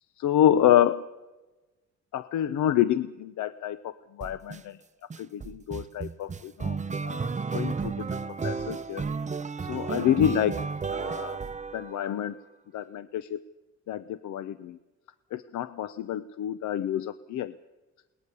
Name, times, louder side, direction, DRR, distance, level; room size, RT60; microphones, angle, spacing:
voice 1, 0.2-1.0 2.1-4.8 5.2-9.1 9.6-10.6 10.9-11.4 11.7-12.3 12.7-13.4 13.9-14.8 15.3-17.5, left 11 dB, 75° left, 13 dB, 0.7 m, -28 dB
sound 1, 4.2-4.6 5.1-12.3, right 5 dB, 25° right, 0.7 m, -33 dB
21.5 x 19.0 x 6.9 m, 1.1 s
cardioid pair, 90°, 30 cm